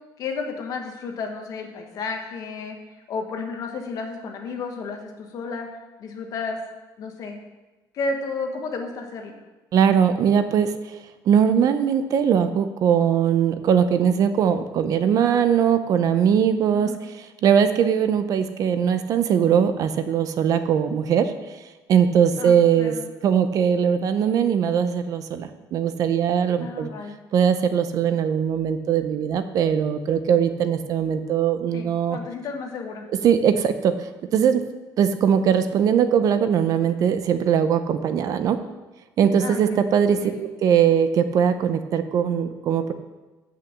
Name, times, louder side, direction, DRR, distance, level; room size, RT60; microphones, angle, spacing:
voice 1, 0.2-2.8 3.1-5.7 6.0-6.6 7.0-7.4 7.9-9.3 16.7-17.1 22.4-23.1 26.6-27.2 31.7-33.0 39.4-39.9 40.2-40.5, left 4 dB, 50° left, 3 dB, 1.4 m, -32 dB
voice 2, 9.7-10.7 11.3-16.9 17.4-21.3 21.9-22.9 23.2-26.9 27.3-32.2 33.2-33.9 34.3-34.6 35.0-38.6 39.2-42.9, right 8 dB, 50° right, 10 dB, 0.6 m, -20 dB
8.4 x 5.9 x 7.2 m, 1.1 s
cardioid pair, 160°, 8 cm